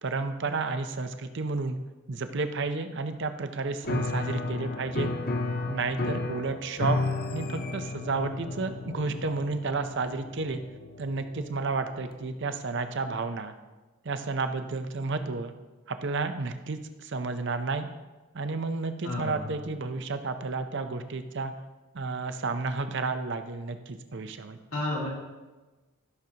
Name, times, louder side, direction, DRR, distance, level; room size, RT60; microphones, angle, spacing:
voice 1, 0.0-1.8 2.1-5.1 5.7-7.0 7.3-10.6 11.0-13.5 14.0-15.5 15.9-17.9 18.3-21.5 21.9-24.6, right 3 dB, 55° right, 8 dB, 0.6 m, -31 dB
Piano, 3.8-12.3, left 2 dB, 45° left, 0.6 m, -33 dB
voice 2, 19.0-19.5 24.7-25.1, left 1 dB, 85° left, -5 dB, 2.8 m, -31 dB
14.0 x 6.5 x 2.9 m, 1.2 s
head